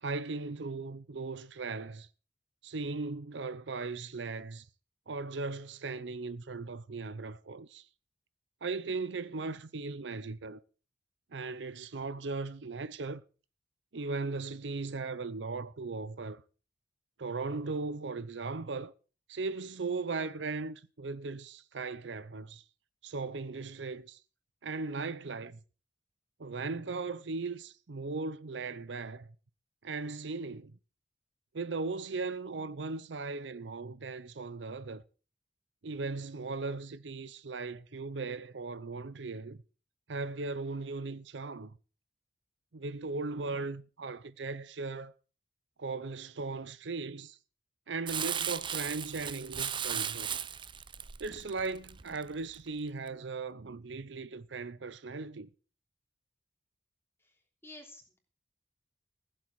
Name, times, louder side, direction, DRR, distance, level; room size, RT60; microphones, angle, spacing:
voice 1, 0.0-2.1 2.6-4.7 5.1-7.9 8.6-10.6 11.3-13.2 13.9-16.4 17.2-18.9 19.3-22.6 23.0-24.2 24.6-25.6 26.4-29.3 29.8-30.8 31.5-35.0 35.8-39.6 40.1-41.8 42.7-45.1 45.8-47.4 47.9-50.3 51.2-55.5, right 3 dB, 70° right, 0.7 m, -38 dB
Crumpling crinkling, 48.1-52.6 53.1-53.2, right 8 dB, 25° right, 0.5 m, -36 dB
voice 2, 57.2-58.2, left 2 dB, 15° left, 3.2 m, -52 dB
15.5 x 7.7 x 6.4 m
head